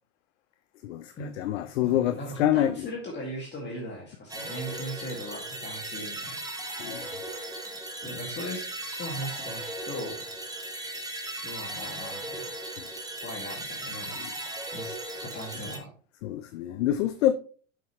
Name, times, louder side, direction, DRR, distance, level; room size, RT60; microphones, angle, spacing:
voice 1, 0.8-2.9 6.8-7.1 14.2-14.3 16.2-17.3, left 12 dB, 70° left, 0.6 m, -26 dB
voice 2, 1.8-6.4 8.0-10.2 11.4-12.5 13.2-14.4 14.7-15.9, equal, 30° left, 2.0 m, -38 dB
sound 1, 4.3-15.8, right 1 dB, 10° right, 1.5 m, -37 dB
7.2 x 6.0 x 3.0 m
hypercardioid pair, 95°, 37 cm